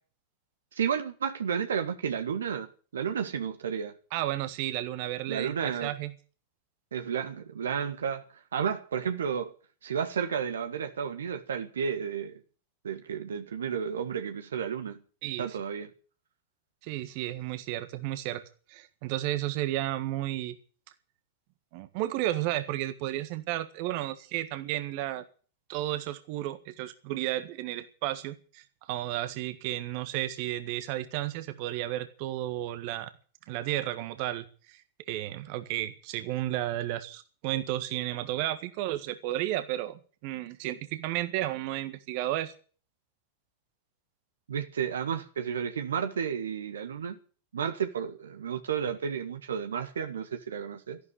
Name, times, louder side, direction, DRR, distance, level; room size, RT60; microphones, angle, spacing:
voice 1, 0.7-3.9 5.3-5.9 6.9-8.2 8.5-9.5 9.8-12.4 12.8-15.0 15.4-15.9 44.5-47.2 47.5-51.0, right 7 dB, 65° right, 1.6 m, -32 dB
voice 2, 4.1-6.1 15.2-15.6 16.8-18.4 18.7-20.6 21.7-25.2 25.7-33.1 33.5-34.8 35.1-42.5, right 14 dB, 45° right, 1.6 m, -33 dB
14.0 x 12.0 x 8.5 m
figure-of-eight pair, 90°, 0 cm